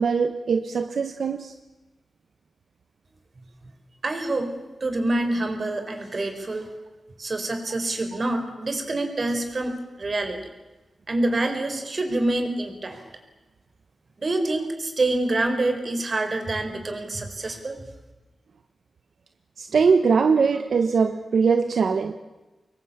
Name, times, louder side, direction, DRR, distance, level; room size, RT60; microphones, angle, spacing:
voice 1, 0.0-1.5 19.6-22.1, right 5 dB, 75° right, 8 dB, 1.2 m, -21 dB
voice 2, 4.0-4.5 4.8-6.7 7.2-10.4 11.1-13.0 14.2-17.8, right 2 dB, 40° right, 7 dB, 4.4 m, -26 dB
25.0 x 22.0 x 8.7 m, 1.1 s
wide cardioid pair, 120°, 0 cm